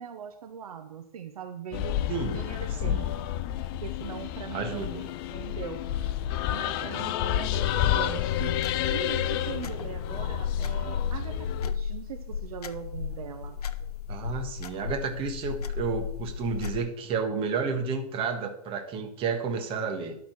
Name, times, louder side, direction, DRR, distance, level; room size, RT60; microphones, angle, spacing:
voice 1, 0.0-2.0 2.3-3.1 3.8-4.9 5.2-5.8 6.5-13.6, right 8 dB, 65° right, 8 dB, 0.9 m, -40 dB
sound 1, 1.7-11.7, left 12 dB, 35° left, 0.5 m, -30 dB
voice 2, 2.1-2.4 2.8-3.1 4.5-5.0 14.1-20.2, right 5 dB, 25° right, 4 dB, 1.5 m, -31 dB
sound 2, 8.3-16.8, left 7 dB, 65° left, 0.8 m, -34 dB
12.0 x 4.1 x 6.0 m, 0.74 s
hypercardioid pair, 120°, 21 cm